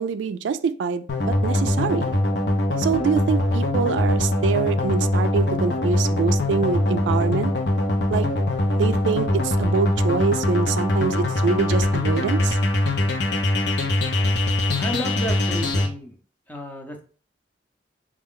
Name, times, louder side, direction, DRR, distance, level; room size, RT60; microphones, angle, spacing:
voice 1, 0.0-2.1 2.8-7.5 8.1-8.3 8.7-12.6, right 5 dB, 85° right, 12 dB, 0.3 m, -25 dB
sound 1, 1.1-15.9, left 1 dB, 65° left, 0.7 m, -22 dB
voice 2, 14.8-16.2 16.5-17.0, equal, 10° left, 4 dB, 0.6 m, -32 dB
4.2 x 2.4 x 3.6 m, 0.40 s
head